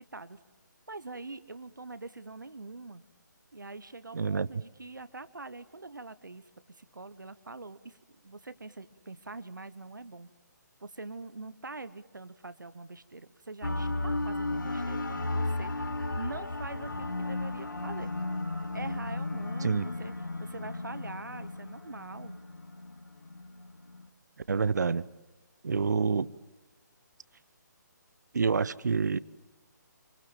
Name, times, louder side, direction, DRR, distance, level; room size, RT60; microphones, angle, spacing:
voice 1, 0.9-3.0 3.5-8.0 8.2-10.3 10.8-15.9 16.2-18.1 18.7-20.1 20.4-22.4, right 3 dB, 80° right, 1.2 m, -44 dB
voice 2, 4.1-4.5 19.6-19.9 24.5-25.0 25.6-26.3 28.3-29.2, right 5 dB, 65° right, 0.9 m, -27 dB
sound 1, 13.6-24.0, left 2 dB, 80° left, 1.9 m, -34 dB
26.5 x 24.5 x 7.5 m
figure-of-eight pair, 145°, 10 cm